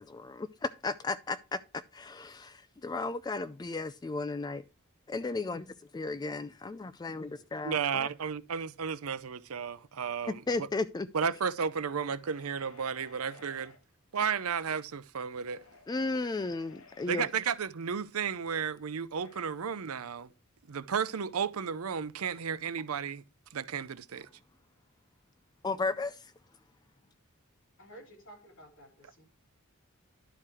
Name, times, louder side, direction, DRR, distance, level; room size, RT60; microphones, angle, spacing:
voice 1, 0.0-1.6 1.9-4.6 5.1-5.7 5.9-8.1 10.5-11.1 15.9-17.3 25.6-26.3, left 3 dB, 20° left, 0.3 m, -34 dB
voice 2, 5.3-5.8 7.2-7.7 27.8-29.2, right 1 dB, 60° left, 3.8 m, -55 dB
voice 3, 7.6-10.7 11.1-13.7 14.1-15.6 17.1-20.3 20.7-23.2 23.5-24.3, right 6 dB, 90° right, 0.6 m, -33 dB
sound 1, 12.1-13.8 15.3-17.5 19.1-19.5, left 3 dB, 80° left, 1.5 m, -56 dB
11.5 x 4.6 x 4.8 m
head